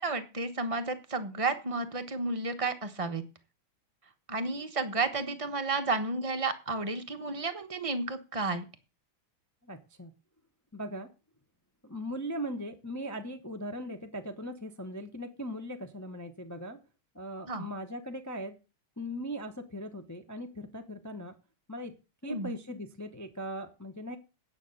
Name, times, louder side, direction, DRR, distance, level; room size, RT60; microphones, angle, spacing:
voice 1, 0.0-3.2 4.3-8.6 17.5-17.7 22.2-22.5, right 3 dB, 25° right, 7 dB, 0.7 m, -32 dB
voice 2, 9.6-10.1 10.7-11.1 11.8-16.8 17.1-18.5 19.0-21.3 21.7-21.9 22.2-24.2, equal, 25° left, 5 dB, 0.4 m, -39 dB
9.3 x 6.6 x 7.9 m, 0.31 s
omnidirectional pair, 2.4 m